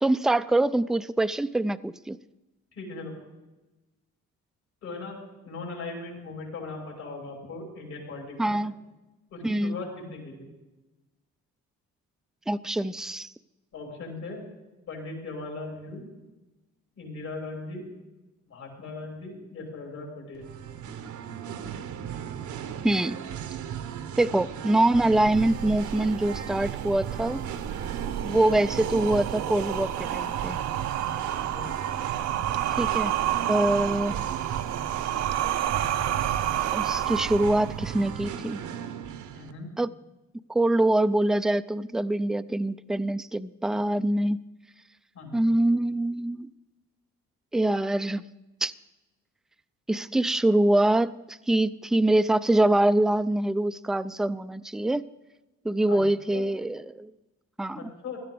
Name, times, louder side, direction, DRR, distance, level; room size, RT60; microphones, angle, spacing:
voice 1, 0.0-2.2 8.4-8.7 9.4-9.8 12.5-13.3 22.8-23.2 24.2-27.4 28.2-30.6 32.7-33.1 33.5-34.1 36.7-38.6 39.8-39.9 40.5-44.4 45.3-46.5 47.5-48.2 48.6-48.7 49.9-55.0 55.6-57.1 57.6-57.9, right 1 dB, ahead, 14 dB, 0.3 m, -24 dB
voice 2, 2.7-3.1 4.8-8.6 9.3-10.5 13.7-14.4 14.9-16.1 17.0-17.9 18.5-20.5 31.5-31.7 33.8-34.1 39.3-39.7 45.1-45.5 55.9-56.4 57.8-58.2, left 3 dB, 70° left, -1 dB, 5.7 m, -39 dB
Singing, 20.3-39.5, right 9 dB, 75° right, 1.0 m, -37 dB
sound 1, 25.1-38.1, right 11 dB, 60° right, 0.6 m, -30 dB
16.5 x 12.5 x 3.9 m, 1.1 s
cardioid pair, 90°, 30 cm